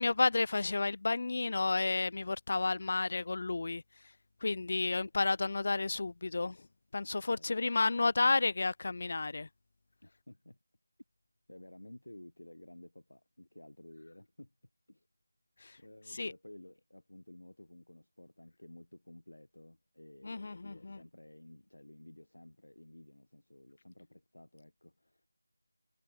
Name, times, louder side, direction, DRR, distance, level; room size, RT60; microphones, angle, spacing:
voice 1, 0.0-3.8 4.4-6.7 6.9-9.5 15.6-15.8 16.1-16.3 20.2-21.0, left 3 dB, 45° left, 0.4 m, -31 dB
voice 2, 7.3-8.1 10.0-10.6 11.5-14.5 14.9-15.1 15.8-25.3, left 1 dB, 75° left, 1.9 m, -54 dB
figure-of-eight pair, 165°, 0 cm